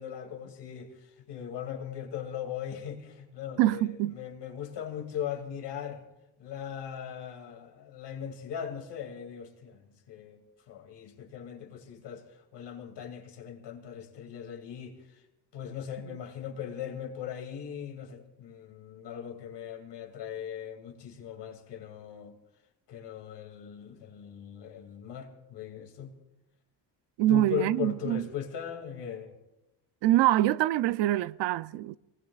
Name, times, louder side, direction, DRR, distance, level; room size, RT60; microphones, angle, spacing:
voice 1, 0.0-3.8 4.1-6.0 6.4-9.8 10.1-10.4 10.7-12.2 12.5-15.0 15.5-22.3 22.9-26.1 27.3-29.4, left 9 dB, 75° left, 2.5 m, -39 dB
voice 2, 3.6-4.2 27.2-28.3 30.0-32.0, right 15 dB, 85° right, 0.5 m, -25 dB
26.5 x 19.0 x 2.4 m
cardioid pair, 110°, 42 cm